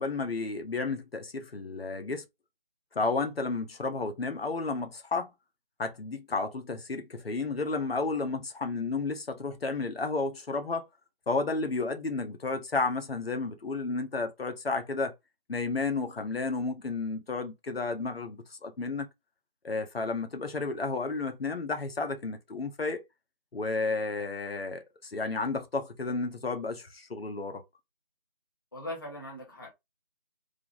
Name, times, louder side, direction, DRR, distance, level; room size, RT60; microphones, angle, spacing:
voice 1, 0.0-2.2 2.9-5.3 5.8-10.9 11.3-15.1 15.5-19.1 19.6-23.0 23.5-27.6, left 3 dB, 90° left, 0.9 m, -32 dB
voice 2, 28.7-29.7, left 1 dB, 20° left, 0.9 m, -40 dB
3.4 x 2.1 x 3.8 m
figure-of-eight pair, 175°, 30 cm